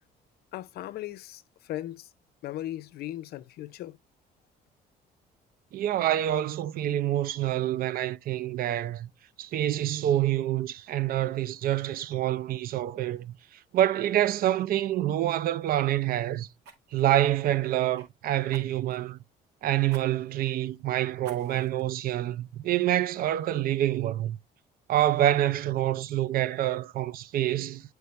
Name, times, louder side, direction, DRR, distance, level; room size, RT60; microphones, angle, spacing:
voice 1, 0.5-2.1 2.4-4.0, left 14 dB, 70° left, 0.5 m, -37 dB
voice 2, 5.7-9.1 9.4-13.3 13.7-16.5 16.9-19.2 19.6-24.4 24.9-27.8, right 12 dB, 60° right, 0.5 m, -27 dB
Fire, 14.5-14.7 16.6-18.1 18.5-19.0 19.9-20.0 20.5-20.6 21.2-21.8 22.3-22.4, right 6 dB, 75° right, 2.0 m, -51 dB
8.2 x 4.7 x 3.1 m
cardioid pair, 110°, 17 cm